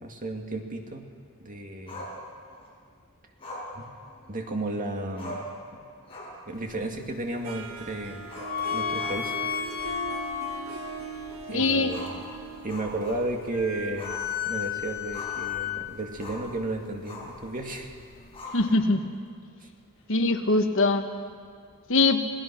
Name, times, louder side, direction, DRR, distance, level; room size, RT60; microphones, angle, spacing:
voice 1, 0.0-1.0 1.4-2.1 3.8-3.9 4.3-5.5 6.5-8.3 8.7-9.4 11.5-12.3 12.6-17.9 18.7-18.9 19.6-19.7, right 2 dB, 40° right, 3 dB, 2.1 m, -33 dB
Growling, 1.9-2.7 3.4-4.6 4.9-5.0 5.2-5.6 6.0-6.5 6.8-6.9 8.2-9.5 9.8-9.9 10.4-10.5 11.8-13.5 14.0-14.2 14.6-15.5 16.2-16.5 17.0-17.4 18.3-19.0, left 1 dB, 25° left, 6.6 m, -42 dB
sound 1, 6.5-18.7, left 9 dB, 45° left, 1.5 m, -36 dB
Harp, 7.4-14.3, right 3 dB, 80° right, 1.5 m, -39 dB
voice 2, 11.5-11.9 18.5-19.1 20.1-21.0 21.9-22.2, left 3 dB, 65° left, 6 dB, 1.4 m, -22 dB
28.0 x 18.0 x 6.1 m, 2.1 s
head